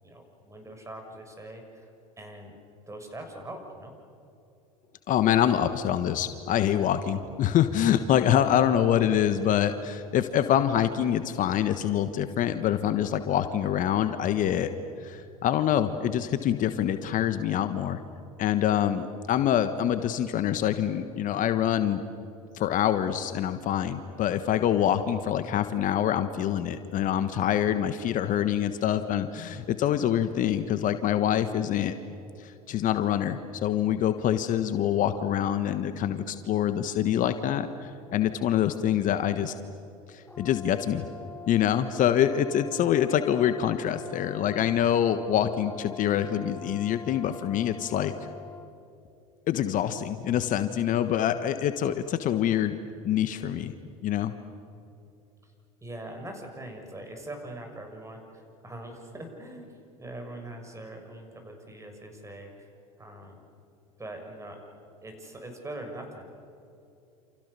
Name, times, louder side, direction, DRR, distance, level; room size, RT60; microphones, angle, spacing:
voice 1, 0.0-1.9 2.2-2.6 2.9-3.9 55.4-55.5 55.8-62.7 63.0-63.4 64.0-64.6 65.0-66.5, right 1 dB, 15° right, 4 dB, 6.8 m, -42 dB
voice 2, 5.1-14.7 15.0-18.0 18.4-22.0 22.5-31.9 32.4-39.5 40.1-41.0 41.5-48.1 49.5-52.7 53.0-53.7 54.0-54.3, left 10 dB, 45° left, 10 dB, 1.4 m, -25 dB
Brass instrument, 40.3-48.7, left 4 dB, 10° left, 2.1 m, -44 dB
29.0 x 28.5 x 6.9 m, 2.7 s
hypercardioid pair, 75°, 18 cm